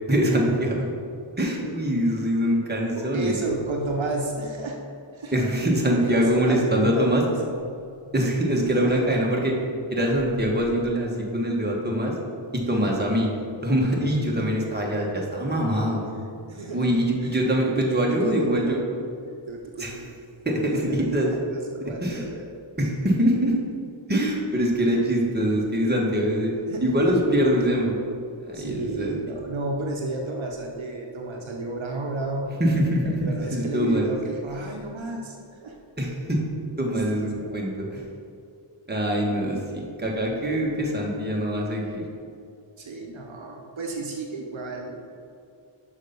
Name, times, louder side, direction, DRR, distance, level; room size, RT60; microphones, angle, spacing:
voice 1, 0.1-0.9 1.4-3.4 5.3-7.2 8.1-9.5 9.9-12.1 12.5-13.3 13.6-16.0 16.7-18.8 19.8-19.9 20.4-21.3 21.8-22.2 22.8-23.6 24.1-26.5 26.8-28.0 28.4-29.1 32.6-34.1 36.0-36.5 36.8-38.0 38.9-42.0, equal, 20° right, -2 dB, 1.4 m, -23 dB
voice 2, 3.0-4.8 5.1-5.5 6.0-7.6 8.5-8.9 12.7-12.9 16.5-17.4 18.0-18.8 19.2-20.2 20.6-20.9 21.2-22.5 26.7-27.2 28.5-32.6 33.2-35.8 36.8-36.9 37.4-37.6 42.8-45.0, right 2 dB, 70° right, 0 dB, 0.9 m, -32 dB
6.4 x 5.5 x 5.2 m, 2.5 s
wide cardioid pair, 75°, 49 cm